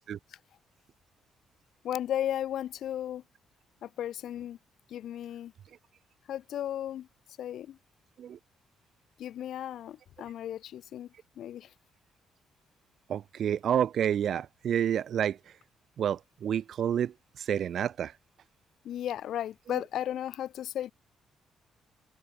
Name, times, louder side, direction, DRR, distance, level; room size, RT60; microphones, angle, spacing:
voice 1, 1.8-3.2 3.8-4.6 4.9-5.5 6.3-7.1 7.4-7.8 9.2-11.1 11.4-11.7 18.8-20.9, left 11 dB, 75° left, 1.0 m, -35 dB
voice 2, 13.1-15.4 16.0-18.1 19.7-19.8, right 9 dB, 65° right, 0.8 m, -29 dB
cardioid pair, 90°, 0 cm